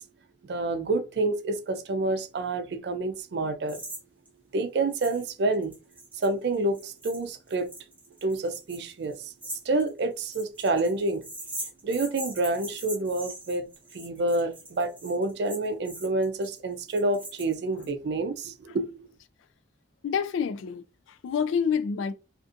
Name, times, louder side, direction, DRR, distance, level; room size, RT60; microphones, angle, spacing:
voice 1, 0.4-3.8 4.5-5.7 6.2-7.7 8.2-11.2 11.8-13.7 13.9-19.0, right 2 dB, 60° right, 0.4 m, -28 dB
sound 1, 3.7-4.0 4.3-4.4 4.9-5.2 5.5-17.9, right 1 dB, 10° right, 0.8 m, -42 dB
voice 2, 20.0-22.1, left 6 dB, 90° left, 0.3 m, -28 dB
2.5 x 2.4 x 2.5 m
head